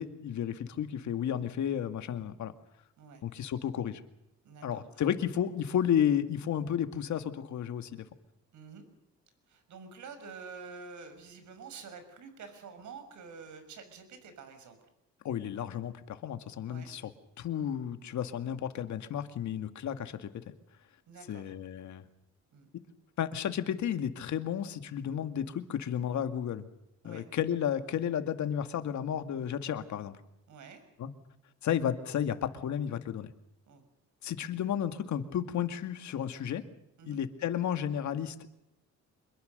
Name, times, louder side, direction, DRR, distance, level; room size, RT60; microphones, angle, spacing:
voice 1, 0.0-2.5 3.2-4.0 4.6-8.0 15.2-17.1 17.4-20.3 21.3-22.0 23.2-26.7 27.0-30.2 31.0-31.1 31.6-33.3 34.2-36.6 37.1-38.5, left 9 dB, 70° left, 8 dB, 2.2 m, -32 dB
voice 2, 4.4-5.0 8.5-8.8 9.5-14.8 16.7-16.9 21.1-21.5 22.5-22.7 27.0-27.3 30.5-30.8 33.7-33.8 37.0-37.2, right 5 dB, 70° right, 9 dB, 6.1 m, -48 dB
26.0 x 22.5 x 6.8 m, 0.81 s
cardioid pair, 90°, 30 cm